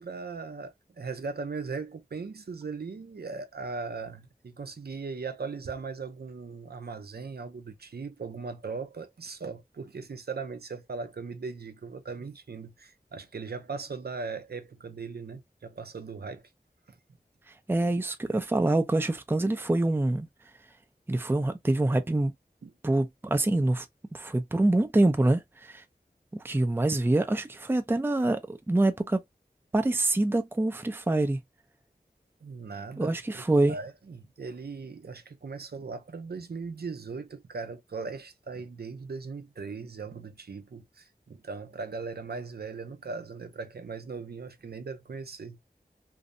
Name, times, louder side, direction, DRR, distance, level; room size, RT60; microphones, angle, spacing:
voice 1, 0.0-16.4 16.9-17.0 22.6-22.7 32.4-33.4 33.7-45.6, right 4 dB, 75° right, 0.5 m, -39 dB
voice 2, 17.7-20.3 21.1-22.3 22.8-23.9 24.1-25.8 26.3-29.2 29.7-31.4 33.0-33.8, right 2 dB, 15° right, 0.4 m, -25 dB
2.6 x 2.0 x 2.4 m
wide cardioid pair, 50°, 17 cm